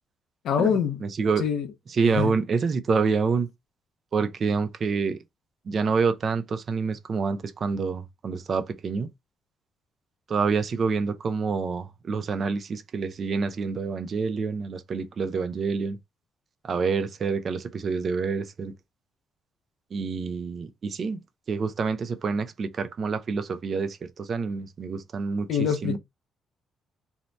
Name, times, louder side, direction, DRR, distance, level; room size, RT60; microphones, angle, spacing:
voice 1, 0.4-1.1 1.4-1.7 2.1-2.4 25.5-26.0, left 7 dB, 75° left, 0.4 m, -25 dB
voice 2, 1.0-1.4 1.9-3.5 4.1-5.2 5.7-9.1 10.3-16.0 16.6-18.7 19.9-21.2 21.5-25.5 25.8-26.0, right 5 dB, 50° right, 0.4 m, -27 dB
2.7 x 2.0 x 3.0 m
cardioid pair, 90°, 0 cm